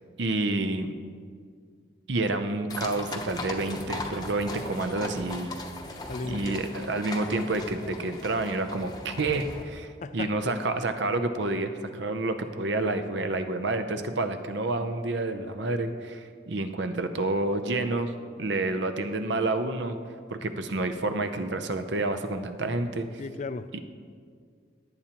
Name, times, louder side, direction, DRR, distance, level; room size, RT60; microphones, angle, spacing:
voice 1, 0.2-0.9 2.1-5.6 6.3-18.1 18.4-20.0 20.3-23.1 23.7-23.8, right 2 dB, 70° right, 8 dB, 0.7 m, -29 dB
sound 1, 2.7-9.6, left 2 dB, 20° left, 0.7 m, -38 dB
voice 2, 6.1-6.6 10.0-10.4 11.5-11.7 17.9-18.1 23.2-23.7, left 3 dB, 40° left, 12 dB, 0.3 m, -36 dB
18.0 x 8.6 x 3.0 m, 2.1 s
head